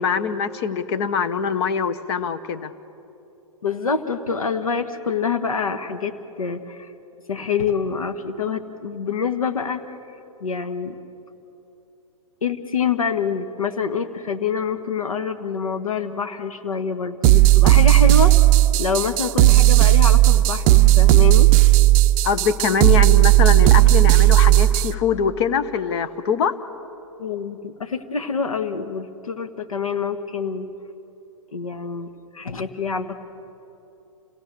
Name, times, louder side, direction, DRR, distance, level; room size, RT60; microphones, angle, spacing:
voice 1, 0.0-2.7 22.2-26.5, left 6 dB, 50° left, 12 dB, 1.2 m, -23 dB
voice 2, 3.6-6.9 7.3-10.0 10.4-11.0 12.4-18.3 18.8-21.5 27.2-30.7 31.5-32.1 32.3-33.2, left 5 dB, 90° left, 8 dB, 1.3 m, -26 dB
sound 1, 17.2-24.9, right 17 dB, 30° right, 0.5 m, -14 dB
28.0 x 18.0 x 6.8 m, 3.0 s
hypercardioid pair, 125°, 17 cm